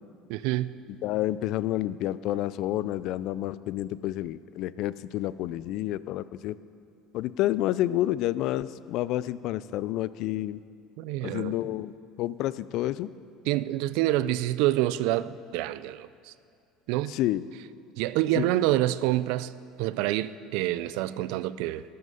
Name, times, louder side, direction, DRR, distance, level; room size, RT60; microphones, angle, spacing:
voice 1, 0.3-0.7 11.0-11.6 13.5-16.3 16.9-17.2 18.0-19.5 19.8-21.8, right 15 dB, 75° right, 16 dB, 0.4 m, -27 dB
voice 2, 1.0-6.6 7.1-10.6 11.2-13.1 17.1-17.4 18.4-18.5, left 14 dB, 60° left, 17 dB, 0.3 m, -29 dB
12.5 x 9.6 x 5.6 m, 2.5 s
cardioid pair, 135°, 0 cm